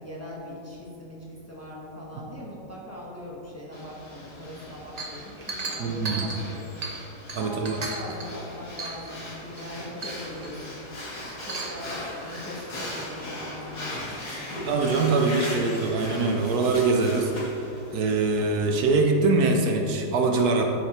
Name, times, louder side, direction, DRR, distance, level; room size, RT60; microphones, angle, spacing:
voice 1, 0.0-6.8 7.3-10.9 11.4-14.5 15.1-15.5, left 1 dB, 10° left, -5 dB, 1.3 m, -40 dB
Breathing, 3.7-18.8, left 1 dB, 80° left, 2.8 m, -39 dB
Chink clink, 5.0-7.0 7.3-8.3 8.8-9.2 9.6-9.7 10.0-10.5 11.3-11.8, right 3 dB, 40° right, 0.6 m, -35 dB
voice 2, 5.8-6.3 7.3-7.8 14.6-17.5 17.9-20.6, right 3 dB, 75° right, 2 dB, 1.3 m, -23 dB
12.0 x 5.1 x 4.3 m, 2.9 s
omnidirectional pair, 1.7 m